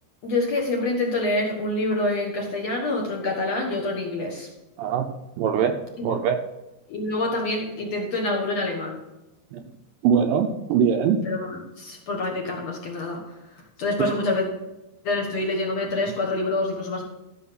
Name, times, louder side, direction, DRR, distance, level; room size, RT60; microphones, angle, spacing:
voice 1, 0.2-4.5 6.0-6.1 6.9-9.0 11.2-13.3 13.5-14.5 15.0-17.0, left 2 dB, 55° left, 0 dB, 2.0 m, -26 dB
voice 2, 5.4-5.7 6.0-6.4 9.5-9.6 10.0-11.2 14.0-14.1, right 7 dB, 80° right, 5 dB, 2.1 m, -22 dB
14.0 x 6.2 x 5.8 m, 1.0 s
omnidirectional pair, 4.8 m